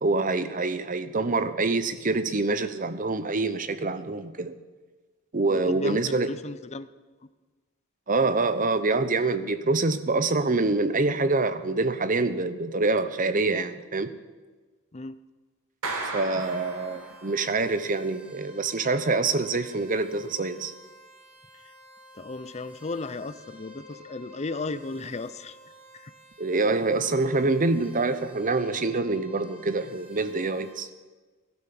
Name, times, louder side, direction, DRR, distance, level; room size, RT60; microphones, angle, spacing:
voice 1, 0.0-4.5 5.3-6.3 8.1-14.2 16.1-20.7 26.4-30.9, right 3 dB, 40° right, 12 dB, 0.9 m, -26 dB
voice 2, 5.5-6.9 14.9-15.2 22.2-25.6 26.0-26.1, left 3 dB, 30° left, 14 dB, 0.6 m, -35 dB
Clapping, 15.8-17.6, right 3 dB, 90° right, 2.3 m, -35 dB
sound 1, 16.4-30.7, left 1 dB, 55° right, 6.0 m, -50 dB
18.5 x 12.0 x 6.0 m, 1.3 s
head